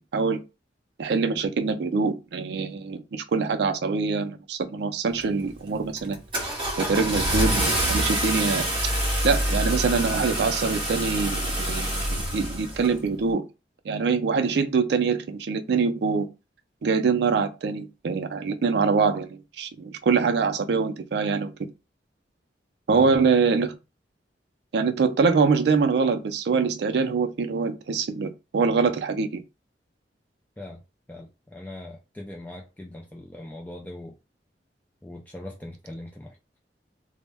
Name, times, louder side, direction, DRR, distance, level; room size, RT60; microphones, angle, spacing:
voice 1, 1.0-6.2 6.8-8.9 9.2-13.4 13.9-16.3 16.8-21.5 22.9-23.8 24.7-29.4, right 5 dB, 65° right, 0.4 m, -24 dB
Car / Engine starting, 5.2-5.5 6.0-12.9, right 1 dB, 30° right, 0.8 m, -26 dB
voice 2, 31.1-34.1 35.0-36.4, left 1 dB, 10° left, 0.3 m, -40 dB
2.1 x 2.1 x 3.2 m
head